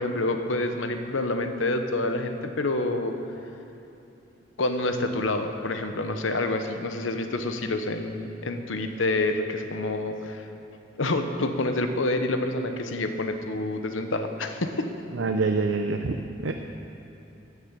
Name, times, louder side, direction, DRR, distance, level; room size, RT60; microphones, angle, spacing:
voice 1, 0.0-3.1 4.6-10.5 11.0-14.9, left 2 dB, 90° left, 7 dB, 0.9 m, -27 dB
voice 2, 15.1-16.2 16.4-16.5, right 4 dB, 75° right, 5 dB, 0.6 m, -25 dB
13.0 x 7.2 x 8.1 m, 3.0 s
head